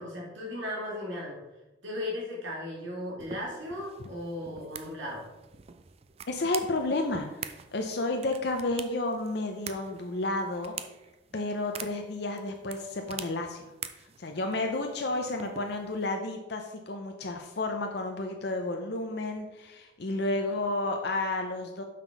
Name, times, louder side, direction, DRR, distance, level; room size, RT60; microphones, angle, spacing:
voice 1, 0.0-1.4 1.8-5.2, left 1 dB, 75° right, -3 dB, 2.1 m, -36 dB
sound 1, 3.2-16.0, right 7 dB, 30° right, 0.4 m, -45 dB
voice 2, 6.3-10.7 11.3-13.7 14.0-21.8, left 2 dB, 55° left, 4 dB, 0.6 m, -31 dB
5.9 x 5.9 x 4.6 m, 1.0 s
head